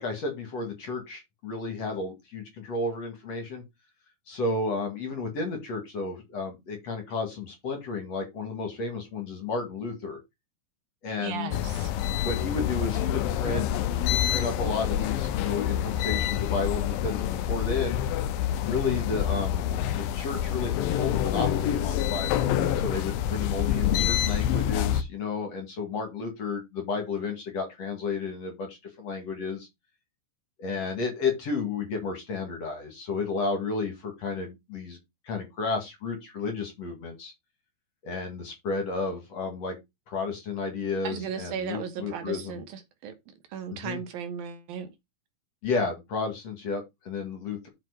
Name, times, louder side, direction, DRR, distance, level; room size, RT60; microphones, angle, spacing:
voice 1, 0.0-3.6 4.3-10.2 11.0-11.5 12.2-13.7 14.0-18.0 18.6-29.7 30.6-35.0 35.2-37.3 38.0-39.8 40.1-42.6 43.7-44.0 45.6-47.7, left 4 dB, 50° left, 2.7 m, -32 dB
voice 2, 11.2-11.9 41.0-43.1 43.5-44.9, right 7 dB, 70° right, 2.9 m, -36 dB
sound 1, 11.5-25.0, left 10 dB, 75° left, 2.4 m, -27 dB
7.6 x 6.0 x 4.8 m
omnidirectional pair, 4.6 m